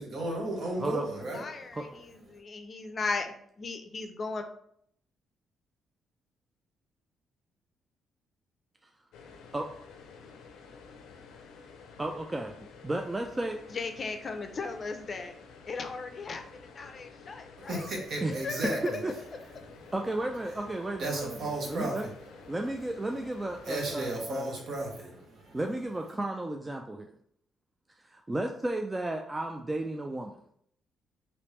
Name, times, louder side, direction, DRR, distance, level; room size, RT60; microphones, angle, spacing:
voice 1, 0.0-1.7 17.6-19.0 19.6-19.9 21.0-22.3 23.6-25.6, right 2 dB, 65° right, 1.1 m, -34 dB
voice 2, 1.3-1.9 2.3-4.4 13.7-15.3 15.7-16.4 16.7-17.9 18.3-18.9, left 4 dB, 40° left, 0.5 m, -36 dB
sound 1, 9.1-24.2, left 5 dB, 90° left, 0.5 m, -51 dB
voice 3, 12.0-12.5 12.8-13.6 18.2-18.4 19.0-19.1 19.4-19.5 19.9-22.1 22.5-24.5 25.5-27.1 28.0-30.3, right 1 dB, 15° right, 0.3 m, -33 dB
3.3 x 2.9 x 3.1 m
cardioid pair, 90°, 0 cm